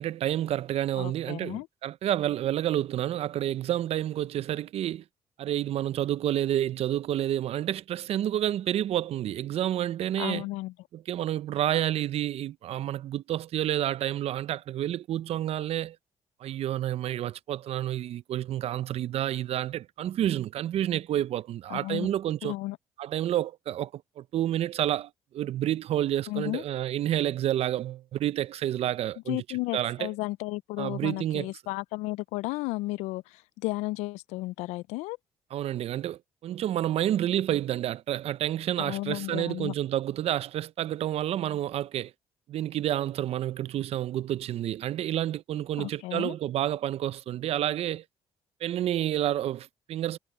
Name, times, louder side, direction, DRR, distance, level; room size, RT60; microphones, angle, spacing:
voice 1, 0.0-5.0 5.4-10.4 10.9-16.0 16.4-22.5 23.0-29.4 29.7-30.1 30.8-31.5 35.5-42.1 42.5-48.0 48.6-50.2, right 12 dB, 65° right, 0.6 m, -29 dB
voice 2, 1.0-1.7 10.2-10.7 21.7-22.1 22.4-22.8 26.3-26.6 29.3-35.2 38.8-39.7 45.8-46.3, left 20 dB, 90° left, 0.4 m, -33 dB
supercardioid pair, 75°, 11 cm